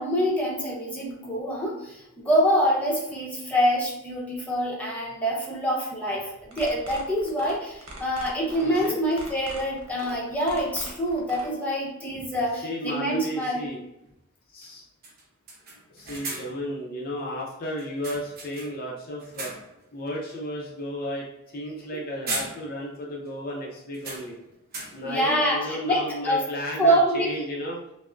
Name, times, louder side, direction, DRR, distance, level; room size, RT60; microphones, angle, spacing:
voice 1, 0.0-13.7 21.9-22.0 25.0-26.4 26.8-27.4, equal, 5° left, -5 dB, 0.8 m, -25 dB
sound 1, 6.4-11.5, right 2 dB, 80° right, 0.9 m, -41 dB
voice 2, 8.6-9.0 12.6-13.8 14.5-14.8 15.9-19.5 19.9-21.3 21.5-24.4 24.9-27.8, left 1 dB, 45° left, -2 dB, 0.5 m, -33 dB
sound 2, 11.4-11.5 13.6-13.7 14.1-14.2 14.6-14.8 15.0-16.7 17.8-18.9 19.2-19.9 20.3-20.5 21.8-21.9 22.3-23.0 23.3-23.4 23.9-25.2, right 3 dB, 45° right, 0.9 m, -38 dB
5.7 x 2.0 x 2.5 m, 0.88 s
head